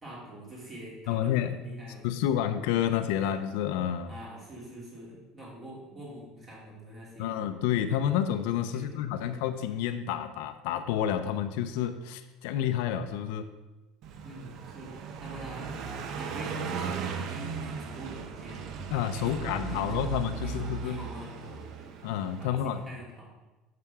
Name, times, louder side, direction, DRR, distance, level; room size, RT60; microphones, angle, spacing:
voice 1, 0.0-2.3 4.1-7.5 8.7-9.4 14.2-14.9 15.2-15.8 16.2-18.7 19.1-21.9 22.4-23.3, right 1 dB, 25° right, -5 dB, 2.7 m, -44 dB
voice 2, 1.1-1.6 2.0-4.1 7.2-13.5 18.9-21.0 22.0-22.8, left 10 dB, 80° left, 9 dB, 0.5 m, -29 dB
Car passing by, 14.0-22.5, right 6 dB, 50° right, 0.6 m, -37 dB
8.5 x 6.0 x 3.5 m, 1.1 s
cardioid pair, 145°, 0 cm